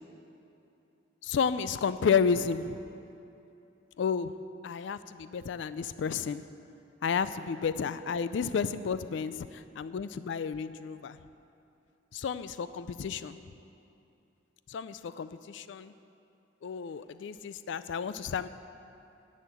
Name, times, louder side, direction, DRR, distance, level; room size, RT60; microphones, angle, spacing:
voice 1, 1.2-2.8 4.0-4.3 4.6-6.4 7.0-11.2 12.1-13.4 14.7-15.9 16.6-18.5, left 6 dB, 75° left, 13 dB, 0.4 m, -31 dB
10.5 x 6.4 x 8.9 m, 2.7 s
head